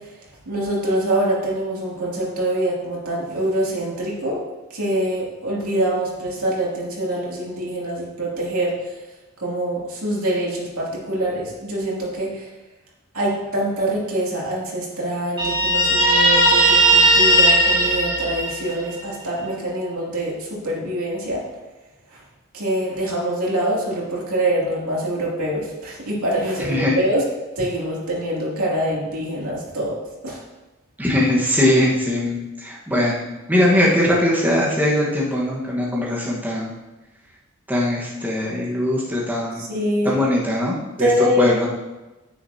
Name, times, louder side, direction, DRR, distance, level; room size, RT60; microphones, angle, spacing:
voice 1, 0.5-4.4 4.7-8.7 9.4-12.4 13.1-21.4 22.5-27.2 27.6-30.0 30.2-30.4 39.6-40.1 41.0-41.5, right 1 dB, 85° right, -5 dB, 2.8 m, -24 dB
Guitar, 15.4-18.9, right 1 dB, 25° right, 1.7 m, -16 dB
voice 2, 31.0-36.7 37.7-39.6 40.0-41.1 41.4-41.7, left 1 dB, 10° right, -5 dB, 1.4 m, -20 dB
9.8 x 9.6 x 2.8 m, 1.1 s
head